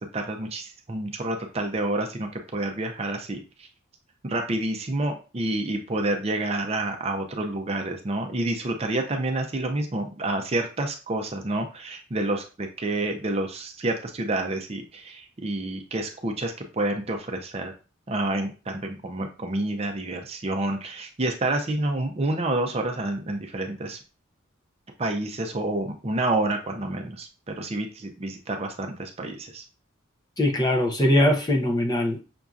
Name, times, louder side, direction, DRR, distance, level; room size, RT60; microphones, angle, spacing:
voice 1, 0.0-3.7 4.2-17.7 18.1-24.0 25.0-27.3 27.6-29.6, right 2 dB, 30° right, 4 dB, 0.5 m, -28 dB
voice 2, 30.4-32.3, left 1 dB, 20° left, 2 dB, 0.6 m, -21 dB
5.9 x 2.7 x 2.3 m, 0.32 s
head